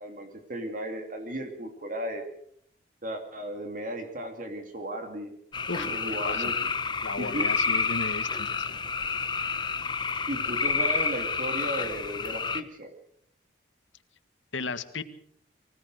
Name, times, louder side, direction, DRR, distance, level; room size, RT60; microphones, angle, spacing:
voice 1, 0.0-2.2 3.0-5.3 5.7-6.7 7.2-7.5 10.3-12.9, right 1 dB, 45° right, 4 dB, 2.7 m, -35 dB
sound 1, 5.5-12.6, left 5 dB, 25° left, 0.9 m, -29 dB
voice 2, 5.7-6.5 7.0-8.8 14.5-15.0, left 3 dB, 80° left, 10 dB, 1.6 m, -35 dB
24.5 x 17.0 x 6.5 m, 0.68 s
head